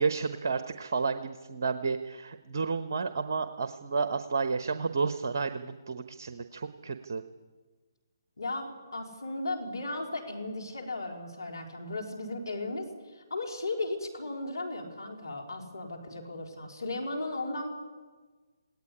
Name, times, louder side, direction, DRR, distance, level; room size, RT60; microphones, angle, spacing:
voice 1, 0.0-7.2, right 4 dB, 55° right, 9 dB, 1.1 m, -31 dB
voice 2, 8.4-17.7, left 2 dB, 75° left, 1 dB, 4.1 m, -36 dB
19.0 x 18.0 x 10.0 m, 1.4 s
figure-of-eight pair, 140°, 2 cm